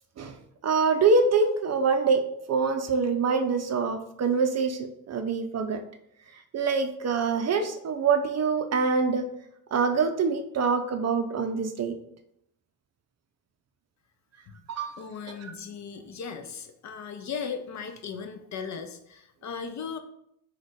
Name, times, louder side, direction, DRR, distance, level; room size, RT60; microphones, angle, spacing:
voice 1, 0.6-2.2 2.5-5.8 6.5-9.3 9.7-12.0 14.7-15.0 15.4-15.5, right 4 dB, 35° right, 6 dB, 0.6 m, -25 dB
voice 2, 15.0-20.0, left 6 dB, 40° left, 7 dB, 0.6 m, -37 dB
3.9 x 2.5 x 4.6 m, 0.75 s
hypercardioid pair, 55°, 47 cm